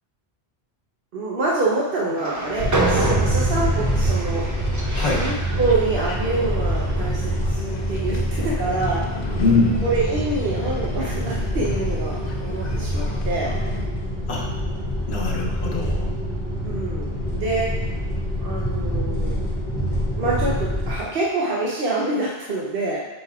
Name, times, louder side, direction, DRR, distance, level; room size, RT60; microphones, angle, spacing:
voice 1, 1.1-4.5 5.1-9.1 9.8-13.6 16.6-17.8 18.4-19.5 20.2-23.1, right 2 dB, 65° right, -5 dB, 1.0 m, -26 dB
Train, 2.1-7.4, right 2 dB, 25° right, 0.4 m, -29 dB
sound 1, 2.3-13.9, left 3 dB, 50° left, 0.7 m, -40 dB
sound 2, 2.6-21.0, equal, 20° left, 1.8 m, -25 dB
voice 2, 4.9-5.3 9.4-9.8 14.3-14.5 15.1-16.2, left 3 dB, 85° left, -3 dB, 1.4 m, -22 dB
7.8 x 5.3 x 2.4 m, 1.1 s
omnidirectional pair, 1.1 m